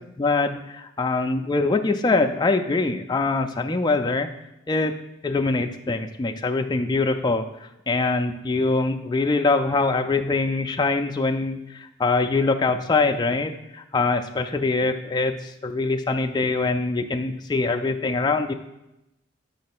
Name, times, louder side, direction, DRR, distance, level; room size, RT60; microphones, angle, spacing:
voice 1, 0.2-0.6 1.0-4.3 4.7-4.9 5.2-7.4 7.9-18.5, left 3 dB, 20° left, 5 dB, 0.3 m, -23 dB
8.3 x 3.2 x 5.9 m, 0.89 s
head